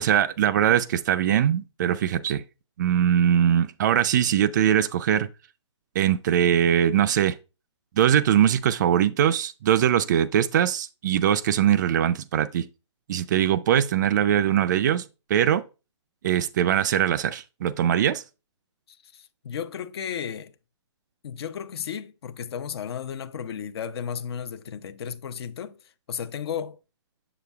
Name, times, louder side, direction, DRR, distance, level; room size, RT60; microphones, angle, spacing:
voice 1, 0.0-2.4 2.8-5.3 6.0-7.4 8.0-12.7 13.1-15.6 16.2-18.2, right 10 dB, 40° right, 0.4 m, -22 dB
voice 2, 18.9-20.5 21.2-25.8 26.1-26.8, left 8 dB, 55° left, 0.6 m, -34 dB
7.3 x 6.8 x 2.3 m
hypercardioid pair, 150°, 16 cm